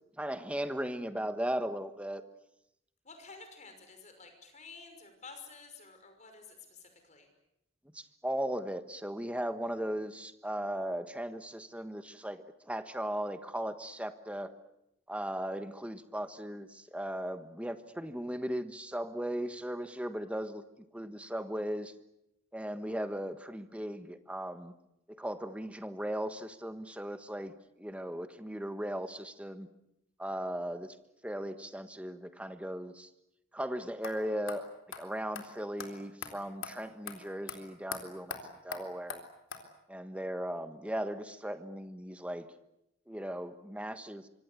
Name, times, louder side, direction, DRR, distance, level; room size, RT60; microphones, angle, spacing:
voice 1, 0.2-2.2 7.9-14.5 15.1-20.6 20.9-21.9 22.5-24.7 25.1-29.7 30.2-31.0 31.2-33.1 33.5-34.7 34.9-39.2 39.9-42.5 43.1-44.3, equal, 5° right, 10 dB, 1.3 m, -37 dB
voice 2, 3.0-7.3, left 4 dB, 35° left, 6 dB, 5.7 m, -51 dB
sound 1, 34.0-34.1 34.5-34.6 34.9-35.0 35.3-35.5 35.8-35.9 36.2-36.3 36.6-36.7 37.1-37.2 37.5-37.6 37.9-38.0 38.3-38.4 38.7-38.8 39.1-39.2 39.5-39.6, left 6 dB, 80° left, 3.8 m, -40 dB
25.5 x 24.5 x 8.3 m, 0.84 s
head